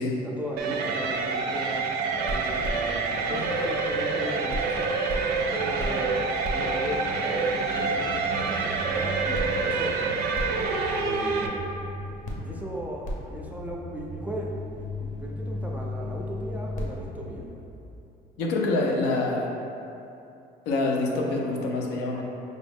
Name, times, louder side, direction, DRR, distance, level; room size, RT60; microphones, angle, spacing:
voice 1, 0.2-1.9 2.3-6.1 6.5-10.1 11.0-11.7 12.4-17.5, equal, 10° right, -2 dB, 0.4 m, -37 dB
sound 1, 0.6-11.5, right 4 dB, 70° right, 0.4 m, -27 dB
sound 2, 2.1-4.2 4.5-18.0, left 1 dB, 50° left, 0.7 m, -37 dB
voice 2, 18.4-19.5 20.7-22.2, left 2 dB, 85° left, 0 dB, 0.5 m, -26 dB
5.0 x 2.0 x 3.5 m, 2.8 s
cardioid pair, 110°, 17 cm